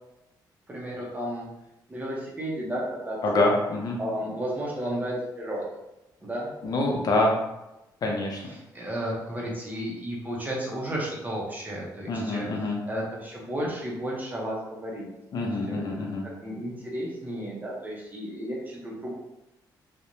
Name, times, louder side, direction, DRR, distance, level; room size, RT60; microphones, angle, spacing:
voice 1, 0.7-1.5 1.9-3.4 4.0-5.7 6.2-6.5 8.4-12.4 12.9-15.1 15.4-16.1 16.4-19.2, right 1 dB, 20° right, -4 dB, 0.6 m, -33 dB
voice 2, 3.2-4.0 6.6-7.4 8.0-8.4 12.1-12.8 15.3-16.2, left 2 dB, 55° left, 0 dB, 0.6 m, -25 dB
2.4 x 2.1 x 2.9 m, 0.94 s
cardioid pair, 130°, 8 cm